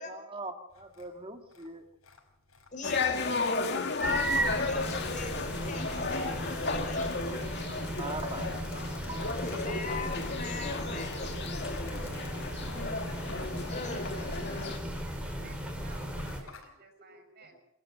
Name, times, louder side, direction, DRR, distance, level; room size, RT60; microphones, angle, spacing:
voice 1, 0.1-1.8 7.3-7.4 7.7-8.6 9.1-9.4 17.0-17.2, right 2 dB, 25° right, 5 dB, 2.1 m, -42 dB
sound 1, 0.7-16.7, left 5 dB, 85° left, 5.5 m, -56 dB
voice 2, 2.7-7.3 9.4-11.4 13.7-14.9, left 3 dB, 40° left, 4 dB, 5.3 m, -41 dB
sound 2, 2.8-14.8, left 4 dB, 55° left, 2.3 m, -34 dB
sound 3, 4.0-16.4, right 1 dB, 5° right, 4.9 m, -36 dB
voice 3, 15.2-17.5, right 4 dB, 50° right, 6 dB, 5.2 m, -56 dB
26.5 x 13.5 x 7.5 m, 0.83 s
head